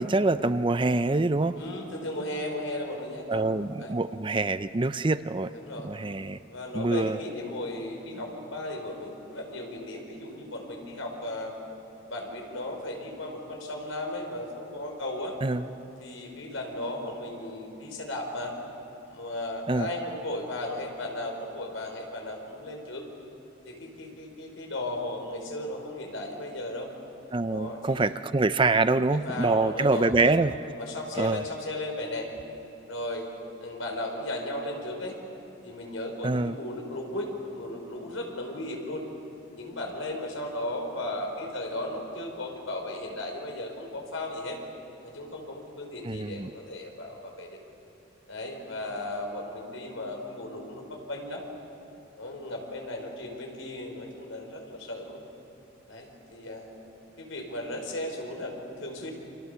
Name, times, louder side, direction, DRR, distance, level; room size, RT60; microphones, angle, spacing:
voice 1, 0.0-1.5 3.3-5.5 5.8-6.4 6.7-7.2 15.4-15.6 19.7-19.9 27.3-30.5 31.2-31.4 36.2-36.6 46.1-46.5, right 3 dB, 25° right, 12 dB, 0.5 m, -25 dB
voice 2, 1.6-3.9 5.5-5.9 6.5-11.5 12.0-15.4 16.0-18.5 19.1-23.0 23.6-26.9 27.4-28.1 28.9-30.4 30.8-32.3 32.9-33.3 33.6-35.1 35.6-39.0 39.5-44.6 45.0-47.6 48.3-51.4 52.2-55.2 55.9-56.7 57.2-59.1, left 1 dB, 85° left, 2 dB, 5.1 m, -36 dB
29.5 x 26.5 x 7.0 m, 2.9 s
head